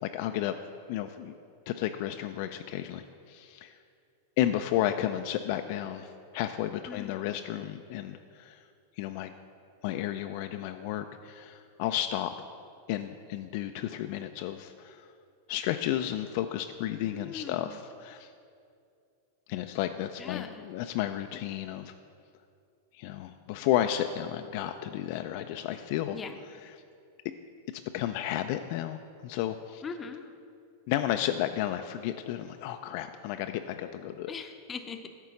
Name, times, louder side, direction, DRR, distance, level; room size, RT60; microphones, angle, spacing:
voice 1, 0.0-0.5 0.9-1.3 1.7-3.8 4.4-8.6 9.0-9.3 9.8-12.3 12.9-15.1 15.5-18.3 19.5-21.9 22.9-26.2 26.5-26.8 27.7-29.8 30.9-34.3, left 12 dB, 55° left, 7 dB, 0.3 m, -32 dB
voice 2, 6.9-7.2 17.1-17.8 20.2-20.7 26.1-26.3 29.8-30.2 34.3-35.1, left 5 dB, 25° left, 7 dB, 0.6 m, -40 dB
9.0 x 3.7 x 7.0 m, 2.4 s
hypercardioid pair, 105°, 0 cm